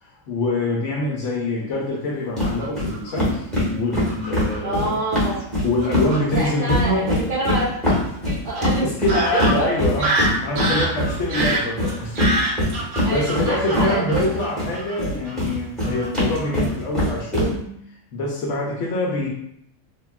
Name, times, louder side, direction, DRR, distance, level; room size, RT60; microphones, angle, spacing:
voice 1, 0.0-5.0 5.6-7.1 8.8-10.2 10.4-12.2 12.6-17.7 18.1-19.3, left 2 dB, 70° left, -2 dB, 0.8 m, -25 dB
sound 1, 2.4-2.5 2.8-2.9 3.2-6.1 6.3-14.7 15.0-17.5, left 1 dB, ahead, 0.9 m, -22 dB
Fowl / Bird vocalization bird call bird song, 2.4-3.1 3.9-4.6 5.4-5.5 5.8-6.2 7.9-8.0 8.5-8.6 9.1-15.0 15.3-15.5 15.8-16.1 16.4-16.7, right 1 dB, 85° right, 1.3 m, -26 dB
voice 2, 4.6-5.4 6.3-7.7 8.3-9.7 13.0-14.4, right 2 dB, 65° right, -6 dB, 0.5 m, -26 dB
3.4 x 2.3 x 2.2 m, 0.73 s
omnidirectional pair, 1.5 m